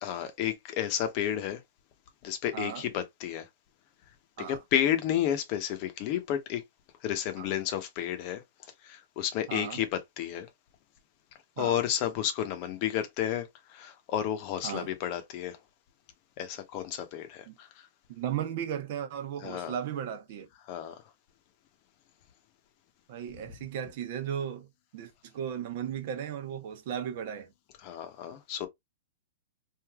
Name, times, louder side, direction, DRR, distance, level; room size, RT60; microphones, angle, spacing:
voice 1, 0.0-1.6 2.2-3.5 4.5-6.6 7.0-8.4 8.8-10.5 11.6-15.6 16.4-17.9 19.4-19.7 20.7-21.0 27.8-28.7, left 10 dB, 40° left, 0.8 m, -31 dB
voice 2, 2.5-2.9 4.4-4.6 7.4-7.5 9.5-9.8 11.6-11.8 14.6-14.9 17.5-17.6 18.1-20.5 23.1-24.7 24.9-27.5, right 9 dB, 55° right, 0.9 m, -36 dB
3.3 x 2.6 x 2.3 m
hypercardioid pair, 135°, 0 cm